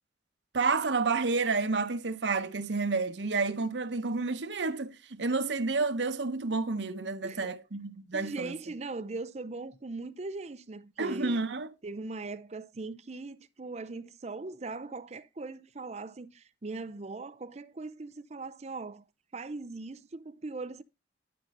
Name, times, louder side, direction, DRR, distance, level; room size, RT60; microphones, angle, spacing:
voice 1, 0.5-8.5 11.0-11.7, right 3 dB, 85° right, 0.9 m, -30 dB
voice 2, 8.1-11.4 11.8-19.0 19.3-20.8, right 3 dB, 40° right, 0.6 m, -40 dB
11.5 x 5.2 x 4.2 m
head